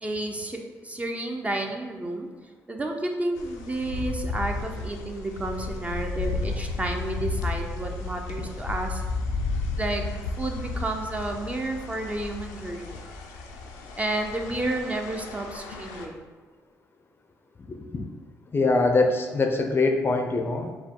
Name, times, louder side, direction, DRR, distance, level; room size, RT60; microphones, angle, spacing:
voice 1, 0.0-2.3 2.7-9.0 9.8-10.0 10.4-13.0 14.0-16.1, right 2 dB, 20° right, 3 dB, 0.6 m, -31 dB
sound 1, 3.4-16.1, left 3 dB, 85° left, 0.4 m, -33 dB
voice 2, 17.7-18.0 18.5-20.7, left 3 dB, 35° left, 4 dB, 0.5 m, -23 dB
4.6 x 2.2 x 3.7 m, 1.4 s
supercardioid pair, 60°, 7 cm